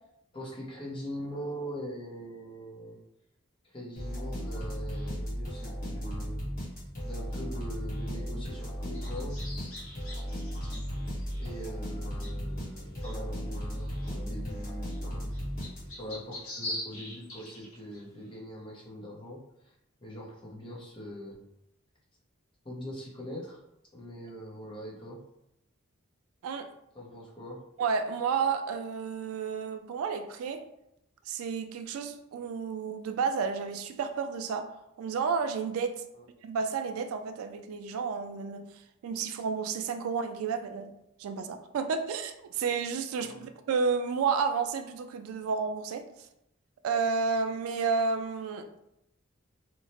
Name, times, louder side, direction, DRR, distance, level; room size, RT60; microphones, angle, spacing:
voice 1, 0.3-3.0 3.7-6.4 7.0-9.4 11.4-15.2 16.0-19.4 20.0-21.4 22.6-23.6 23.9-25.2 26.9-27.6 36.1-36.2 43.2-43.5, equal, 25° left, -4 dB, 0.6 m, -42 dB
sound 1, 4.0-16.2, equal, 40° left, 1.0 m, -36 dB
sound 2, 8.8-18.3, left 1 dB, 80° left, 0.9 m, -45 dB
voice 2, 27.8-30.6 31.3-34.7 35.0-36.0 36.4-38.7 39.0-40.9 41.2-46.0 46.8-48.7, right 5 dB, 90° right, 8 dB, 0.3 m, -31 dB
2.8 x 2.1 x 2.8 m, 0.81 s
head